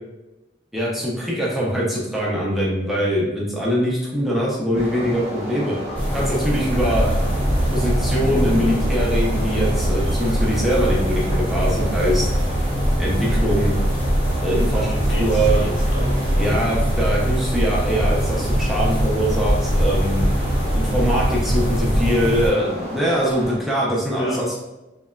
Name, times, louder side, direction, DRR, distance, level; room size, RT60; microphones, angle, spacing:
voice 1, 0.7-5.8 6.1-7.1 7.7-12.3 13.0-13.8 14.4-14.9 15.2-15.6 16.4-20.2 20.7-24.6, equal, ahead, -6 dB, 0.4 m, -22 dB
sound 1, 4.7-23.6, equal, 35° right, 0.6 m, -32 dB
sound 2, 5.9-22.5, equal, 30° left, 1.0 m, -23 dB
sound 3, 6.8-21.7, right 1 dB, 85° right, 0.4 m, -26 dB
voice 2, 14.7-16.6 24.2-24.4, left 1 dB, 65° left, -2 dB, 0.6 m, -33 dB
2.8 x 2.1 x 2.2 m, 0.99 s
head